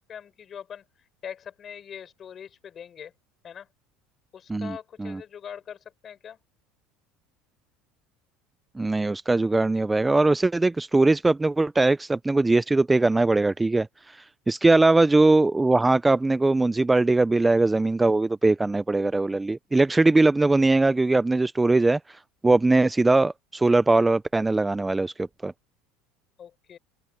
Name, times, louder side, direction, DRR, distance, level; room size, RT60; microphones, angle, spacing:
voice 1, 0.1-0.8 1.2-3.1 3.4-3.7 4.3-6.4 26.4-26.8, left 8 dB, 35° left, 6.1 m, -42 dB
voice 2, 4.5-5.2 8.8-25.5, right 2 dB, 10° right, 0.4 m, -21 dB
supercardioid pair, 125°, 0 cm